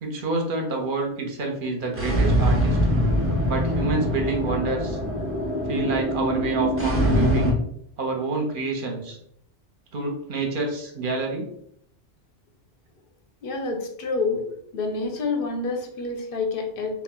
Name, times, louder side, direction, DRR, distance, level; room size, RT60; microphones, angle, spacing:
voice 1, 0.0-2.8 3.5-5.0 5.7-7.6 8.0-9.2 9.9-11.5, right 3 dB, 55° right, 1 dB, 0.7 m, -28 dB
sound 1, 1.9-7.5, equal, 20° right, 0.4 m, -23 dB
voice 2, 13.4-14.4 14.7-17.0, left 3 dB, 60° left, 3 dB, 0.7 m, -28 dB
2.4 x 2.1 x 3.6 m, 0.71 s
omnidirectional pair, 1.2 m